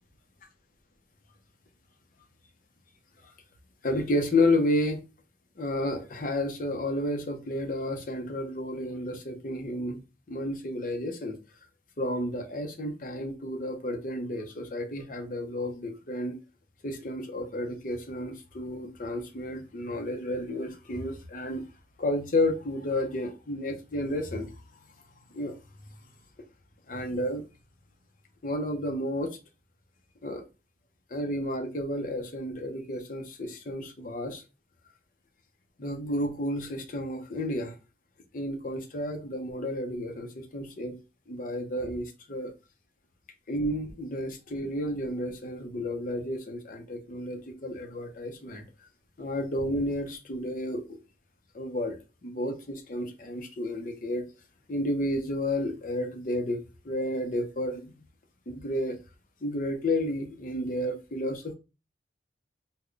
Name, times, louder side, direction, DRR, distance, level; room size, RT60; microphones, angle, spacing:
voice 1, 3.8-5.0 5.6-10.0 10.3-11.4 12.0-16.4 16.8-21.6 22.0-24.5 25.3-25.5 26.9-27.4 28.4-29.4 30.2-30.4 31.1-34.4 35.8-37.8 38.3-41.0 41.3-42.5 43.5-48.6 49.2-51.0 51.5-54.3 54.7-56.6 56.8-57.9 58.5-59.0 59.4-61.5, left 1 dB, 45° left, 0.6 m, -31 dB
3.7 x 2.2 x 3.2 m
head